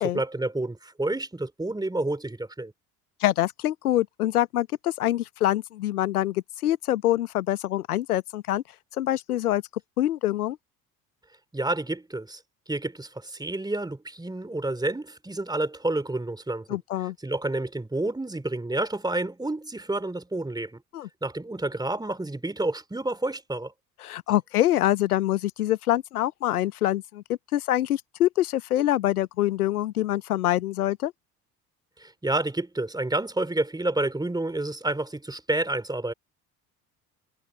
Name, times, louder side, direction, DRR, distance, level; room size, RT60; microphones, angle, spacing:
voice 1, 0.0-2.7 11.5-12.4 12.7-16.8 17.2-20.8 21.2-23.7 32.0-36.1, right 2 dB, 10° right, 3.3 m, -29 dB
voice 2, 3.2-8.6 9.0-9.6 10.0-10.6 16.7-17.1 20.9-21.1 24.0-27.2 27.5-31.1, left 14 dB, 70° left, 1.0 m, -25 dB
figure-of-eight pair, 55°, 45 cm